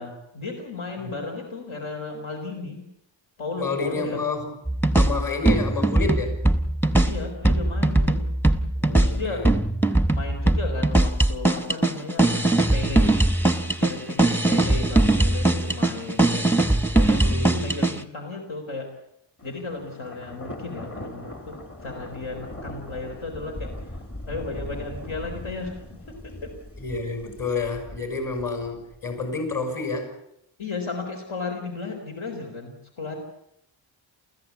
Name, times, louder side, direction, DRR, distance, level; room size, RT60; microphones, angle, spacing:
voice 1, 0.0-2.8 3.4-4.2 7.0-8.2 9.0-9.5 10.1-13.1 13.8-18.9 19.4-21.6 21.8-23.7 24.3-25.7 26.1-26.5 30.6-33.2, left 3 dB, 80° left, 3 dB, 4.3 m, -34 dB
voice 2, 3.6-4.5 4.9-6.4 8.7-9.5 17.1-17.8 26.8-30.1, left 3 dB, 45° left, 6 dB, 6.3 m, -29 dB
sound 1, 4.7-18.0, right 2 dB, 5° left, 0.9 m, -21 dB
Thunder, 19.4-29.2, left 1 dB, 30° left, 2.0 m, -40 dB
29.0 x 15.0 x 8.4 m, 0.79 s
wide cardioid pair, 175°, 48 cm